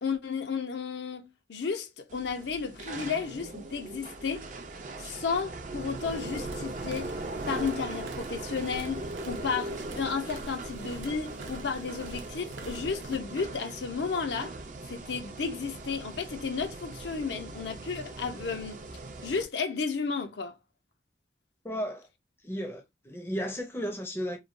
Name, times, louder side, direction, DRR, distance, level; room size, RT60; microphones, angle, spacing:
voice 1, 0.0-4.5 5.0-7.2 7.5-14.5 14.9-18.8 19.2-20.6, left 5 dB, 70° left, 0.5 m, -33 dB
sound 1, 2.1-19.4, right 2 dB, 45° right, 0.4 m, -40 dB
sound 2, 6.0-13.2, right 2 dB, 90° right, 0.6 m, -47 dB
voice 2, 21.6-22.1 22.4-24.4, equal, 15° left, 0.5 m, -34 dB
3.0 x 2.2 x 2.5 m
head